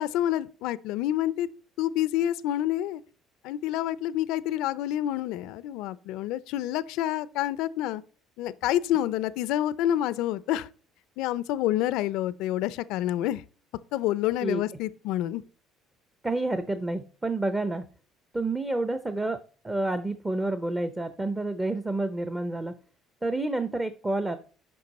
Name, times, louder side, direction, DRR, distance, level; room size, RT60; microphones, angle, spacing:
voice 1, 0.0-1.5 1.8-3.0 3.4-8.0 8.4-10.7 11.2-13.4 13.9-15.4, left 13 dB, 80° left, 0.4 m, -28 dB
voice 2, 16.2-17.8 18.3-19.4 19.6-22.7 23.2-24.4, right 2 dB, 15° right, 0.7 m, -29 dB
7.7 x 5.3 x 4.1 m
supercardioid pair, 90°, 0 cm